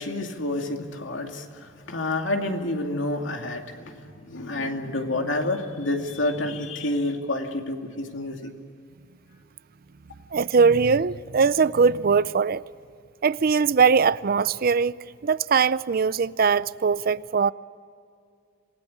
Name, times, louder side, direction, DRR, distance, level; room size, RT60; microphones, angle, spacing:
voice 1, 0.0-8.5, left 2 dB, 90° left, 2.5 m, -29 dB
voice 2, 10.3-12.6 13.2-14.9 15.2-17.5, right 5 dB, 50° right, 0.5 m, -21 dB
27.0 x 19.0 x 8.6 m
head